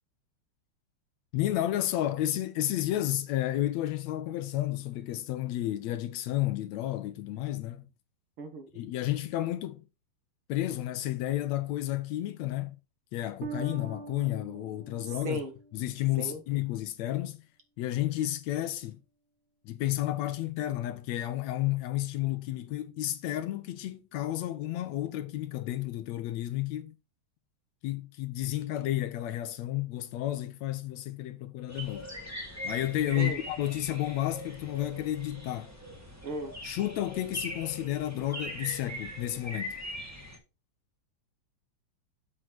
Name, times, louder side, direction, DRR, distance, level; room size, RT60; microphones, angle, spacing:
voice 1, 1.3-7.9 8.7-9.8 10.5-12.8 13.1-15.4 15.7-17.4 17.8-19.0 19.6-27.0 27.8-32.1 32.6-35.7 36.6-39.7, left 14 dB, 80° left, 1.9 m, -31 dB
voice 2, 8.4-8.7 15.2-15.5 16.2-16.4 33.2-33.4 36.2-36.5, right 2 dB, 55° right, 1.9 m, -35 dB
Bass guitar, 13.4-16.4, right 5 dB, 85° right, 2.9 m, -44 dB
sound 1, 31.7-40.4, equal, 5° right, 1.5 m, -41 dB
7.9 x 6.2 x 4.6 m
omnidirectional pair, 3.3 m